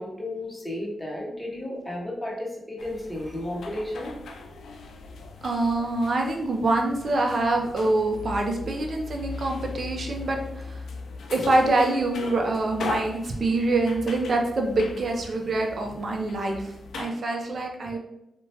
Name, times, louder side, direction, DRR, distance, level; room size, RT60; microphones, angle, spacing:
voice 1, 0.0-4.1 12.4-12.5 17.9-18.0, left 1 dB, 5° left, -3 dB, 1.0 m, -33 dB
sound 1, 2.8-17.1, left 3 dB, 80° left, 0.3 m, -39 dB
voice 2, 5.4-10.4 10.6-10.8 11.3-18.0, right 2 dB, 55° right, 2 dB, 0.5 m, -25 dB
2.8 x 2.2 x 2.7 m, 0.84 s
cardioid pair, 60°, 0 cm